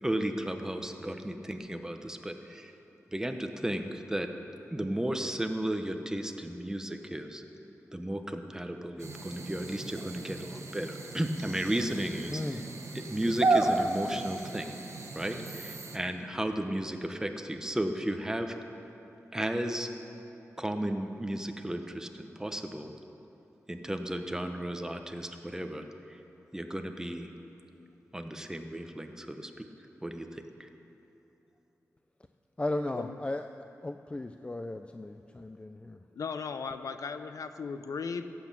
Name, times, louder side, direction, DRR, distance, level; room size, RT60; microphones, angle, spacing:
voice 1, 0.0-2.7 3.1-4.3 4.6-7.4 7.9-12.4 12.9-14.7 15.1-18.6 19.3-19.9 20.6-22.9 23.7-26.2 26.5-27.3 28.1-29.7 30.0-30.7, right 1 dB, 10° right, 6 dB, 0.9 m, -34 dB
sound 1, 9.0-16.0, right 3 dB, 60° right, 1.3 m, -33 dB
voice 2, 12.3-12.7 32.6-33.5 33.8-36.0, left 2 dB, 20° left, 8 dB, 0.4 m, -36 dB
voice 3, 36.2-38.2, left 5 dB, 85° left, 9 dB, 0.7 m, -36 dB
16.5 x 8.5 x 7.4 m, 3.0 s
wide cardioid pair, 110°, 6 cm